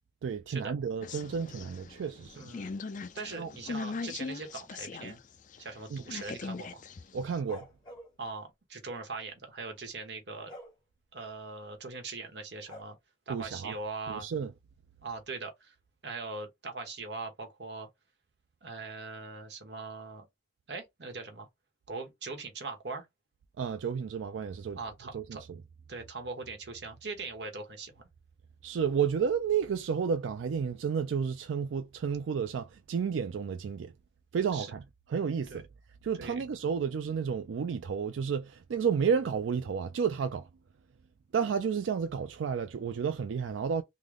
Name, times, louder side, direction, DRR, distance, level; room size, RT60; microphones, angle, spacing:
voice 1, 0.2-2.4 3.4-3.5 5.9-6.0 7.1-7.7 13.3-13.8 14.1-14.5 23.6-24.8 25.1-25.4 28.6-33.9 34.3-34.8 35.1-35.7 36.0-40.5 41.3-43.8, right 6 dB, 90° right, 0.4 m, -31 dB
sound 1, 1.0-5.2 5.5-7.4, left 4 dB, 45° left, 0.4 m, -40 dB
voice 2, 2.3-2.7 3.1-5.2 5.6-6.8 8.2-10.5 11.1-13.0 13.3-14.3 15.0-15.7 16.0-17.9 18.6-20.2 20.7-21.5 21.9-23.1 24.7-25.4 25.9-28.1 34.5-34.7 35.5-35.6 36.2-36.4, right 3 dB, 65° right, 1.0 m, -41 dB
sound 2, 7.5-8.1 10.5-10.7 12.7-12.8, left 1 dB, 25° left, 1.8 m, -46 dB
3.7 x 2.1 x 3.2 m
head